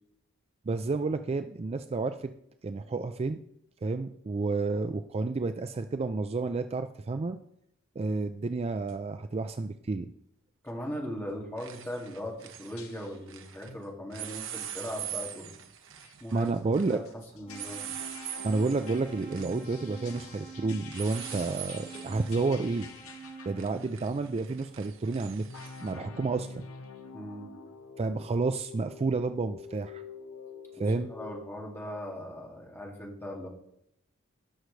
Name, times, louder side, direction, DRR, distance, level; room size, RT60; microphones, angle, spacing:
voice 1, 0.7-2.3 2.6-3.4 3.8-7.4 8.0-10.1 16.3-17.0 18.4-22.9 23.5-25.4 25.8-26.6 28.0-30.0 30.8-31.1, right 3 dB, 30° right, 9 dB, 0.4 m, -30 dB
sound 1, 8.9-9.0 10.7-11.0 11.3-13.7 14.1-25.9, right 10 dB, 65° right, 1.0 m, -44 dB
voice 2, 10.6-15.5 16.2-16.5 16.9-17.0 17.3-17.8 27.1-27.5 30.9-33.5, equal, 10° left, -1 dB, 2.2 m, -39 dB
sound 2, 12.4-12.5 12.8-13.2 13.7-13.9 14.4-14.6 15.0-15.4 16.0-24.0 25.4-31.4, left 5 dB, 80° left, 1.1 m, -48 dB
sound 3, 17.5-23.7, right 3 dB, 30° left, 3.0 m, -46 dB
18.0 x 6.3 x 3.2 m, 0.77 s
head